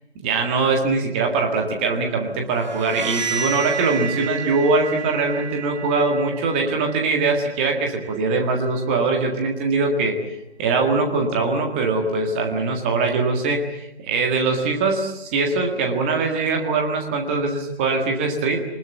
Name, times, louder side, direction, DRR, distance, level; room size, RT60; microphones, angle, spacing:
voice 1, 0.2-10.2 10.6-18.6, right 3 dB, 10° right, 3 dB, 1.7 m, -22 dB
sound 1, 2.6-8.2, right 6 dB, 40° right, 2.5 m, -31 dB
25.0 x 20.0 x 9.2 m, 0.86 s
figure-of-eight pair, 155°, 33 cm